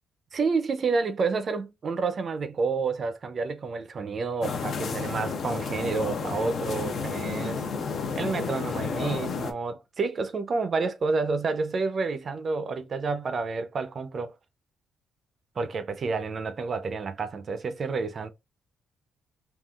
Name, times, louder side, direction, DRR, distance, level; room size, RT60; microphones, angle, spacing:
voice 1, 0.3-7.6 8.1-14.3 15.6-18.3, right 4 dB, 45° right, 0.4 m, -29 dB
sound 1, 4.4-9.5, left 5 dB, 60° left, 0.5 m, -31 dB
3.6 x 2.3 x 2.3 m
cardioid pair, 90°, 0 cm